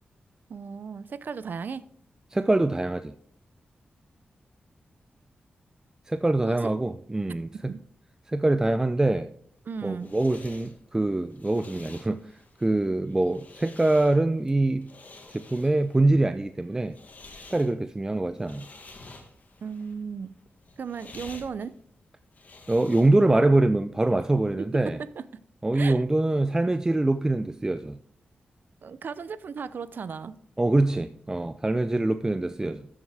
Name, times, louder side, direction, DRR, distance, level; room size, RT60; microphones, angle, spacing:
voice 1, 0.5-1.8 6.4-6.7 7.7-7.8 9.7-10.1 19.6-20.3 20.8-21.7 24.6-24.7 25.2-25.3 25.7-26.0 28.8-30.3, right 6 dB, 65° right, 0.6 m, -35 dB
voice 2, 2.3-3.1 6.1-7.7 8.3-9.3 9.8-12.2 12.6-14.9 15.3-17.0 17.5-18.7 22.7-25.0 25.6-28.0 30.6-32.9, right 2 dB, 15° right, 0.4 m, -24 dB
sound 1, 9.6-23.4, left 3 dB, 50° left, 1.7 m, -50 dB
13.0 x 7.2 x 3.5 m
wide cardioid pair, 90°, 4 cm